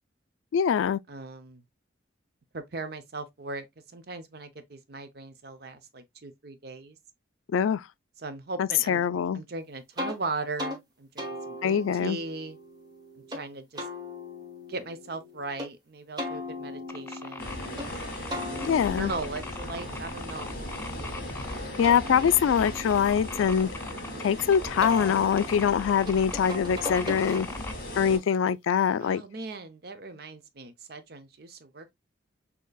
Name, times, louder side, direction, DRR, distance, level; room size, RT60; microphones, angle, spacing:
voice 1, 0.5-1.0 7.5-7.8 8.6-9.4 11.6-12.2 18.6-19.1 21.8-23.7 24.2-27.5 27.9-29.2, left 8 dB, 85° left, 0.3 m, -24 dB
voice 2, 1.1-1.6 2.5-3.7 3.9-7.0 8.2-9.0 9.3-12.6 13.3-13.8 14.7-17.7 18.9-20.6 28.0-28.3 29.0-31.9, right 3 dB, 50° right, 0.6 m, -38 dB
sound 1, 10.0-10.2 10.6-10.8 11.2-13.4 13.8-15.7 16.2-17.9 18.3-21.2 21.6-24.3 24.8-27.8, left 1 dB, 20° right, 0.9 m, -39 dB
sound 2, 16.9-27.7, left 3 dB, 10° left, 0.4 m, -41 dB
sound 3, 17.4-28.2, left 1 dB, 45° left, 1.8 m, -38 dB
6.5 x 2.8 x 2.2 m
head